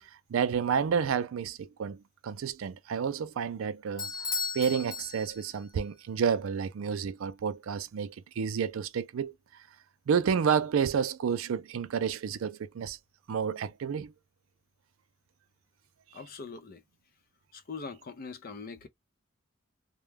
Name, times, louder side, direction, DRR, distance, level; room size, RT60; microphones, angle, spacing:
voice 1, 0.3-9.3 10.1-13.0 13.3-14.1, right 7 dB, 85° right, 0.4 m, -30 dB
Bell / Doorbell, 4.0-5.7, left 4 dB, 20° left, 0.8 m, -35 dB
voice 2, 16.1-16.8 17.5-18.9, left 4 dB, 45° left, 0.5 m, -42 dB
2.2 x 2.1 x 3.3 m
head